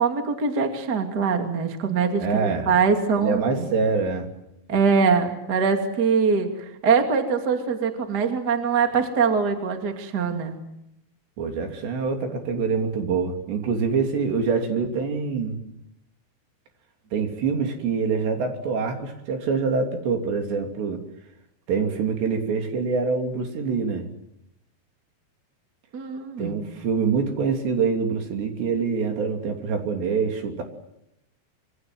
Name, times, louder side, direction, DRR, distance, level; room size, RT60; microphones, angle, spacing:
voice 1, 0.0-3.7 4.7-10.6 25.9-26.6, right 5 dB, 30° right, 5 dB, 2.2 m, -23 dB
voice 2, 2.2-2.7 3.2-4.3 11.4-15.6 17.1-21.0 21.7-24.1 26.4-30.6, right 5 dB, 70° right, 4 dB, 5.1 m, -25 dB
26.0 x 25.0 x 7.9 m, 0.84 s
omnidirectional pair, 5.2 m